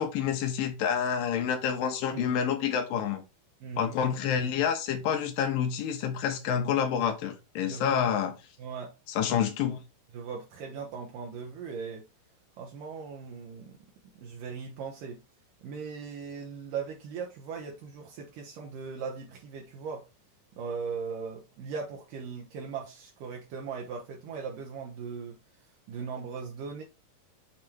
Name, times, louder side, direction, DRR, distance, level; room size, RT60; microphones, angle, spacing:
voice 1, 0.0-3.2 3.8-8.3 9.2-9.8, left 8 dB, 75° left, 2.8 m, -28 dB
voice 2, 3.6-4.0 7.6-8.1 8.6-8.9 10.1-12.1 12.6-13.8 14.1-15.2 15.6-20.1 20.6-25.4 25.9-26.8, right 5 dB, 70° right, 2.6 m, -39 dB
7.4 x 3.4 x 4.5 m
omnidirectional pair, 4.1 m